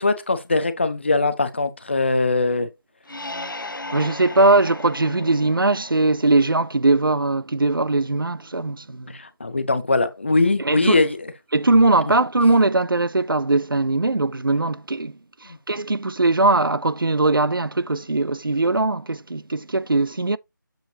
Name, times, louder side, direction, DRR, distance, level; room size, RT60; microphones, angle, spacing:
voice 1, 0.0-2.7 9.1-11.2, left 3 dB, 35° left, 0.6 m, -21 dB
sound 1, 3.0-6.6, left 2 dB, 75° left, 0.8 m, -36 dB
voice 2, 3.9-9.2 10.6-11.0 11.5-20.4, right 2 dB, 90° right, 0.4 m, -20 dB
7.4 x 5.4 x 2.8 m
figure-of-eight pair, 165°, 11 cm